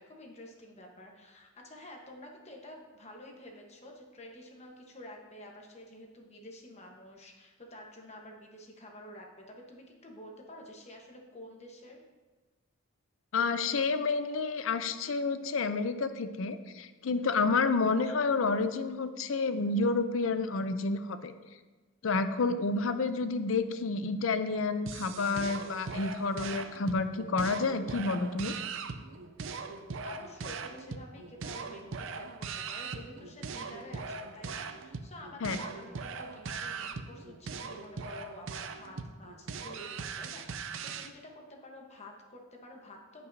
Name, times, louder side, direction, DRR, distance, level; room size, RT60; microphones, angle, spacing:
voice 1, 0.0-12.0 30.0-43.3, left 1 dB, 35° left, 1 dB, 1.1 m, -49 dB
voice 2, 13.3-21.3 22.0-28.5 35.4-35.6, left 4 dB, 75° left, 10 dB, 0.6 m, -29 dB
sound 1, 24.9-41.1, right 5 dB, 70° right, 0.5 m, -40 dB
14.0 x 5.5 x 2.7 m, 1.2 s
head